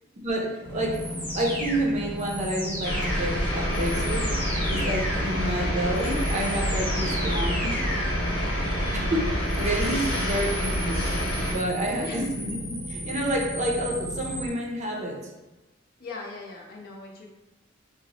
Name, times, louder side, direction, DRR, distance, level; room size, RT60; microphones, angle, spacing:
voice 1, 0.2-4.3 4.7-7.9 8.9-11.1 11.5-15.2, right 1 dB, 35° right, -1 dB, 0.5 m, -29 dB
sound 1, 0.6-14.5, equal, 10° left, 0.9 m, -34 dB
sound 2, 2.8-11.5, equal, 85° left, 1.0 m, -27 dB
voice 2, 16.0-17.3, left 3 dB, 50° left, -1 dB, 0.6 m, -39 dB
3.8 x 2.0 x 2.8 m, 1.1 s
head